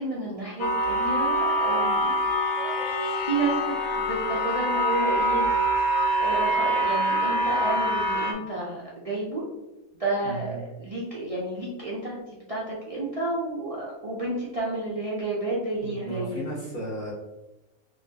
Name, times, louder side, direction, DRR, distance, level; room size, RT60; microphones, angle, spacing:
voice 1, 0.0-2.2 2.5-3.6 3.9-5.4 6.2-9.5 10.0-16.4, right 2 dB, 55° right, -5 dB, 0.4 m, -31 dB
sound 1, 0.6-8.3, equal, 65° left, 0.7 m, -25 dB
voice 2, 10.2-10.6 15.8-17.1, right 2 dB, 40° left, -7 dB, 1.0 m, -34 dB
4.0 x 2.9 x 2.7 m, 0.98 s
omnidirectional pair, 1.5 m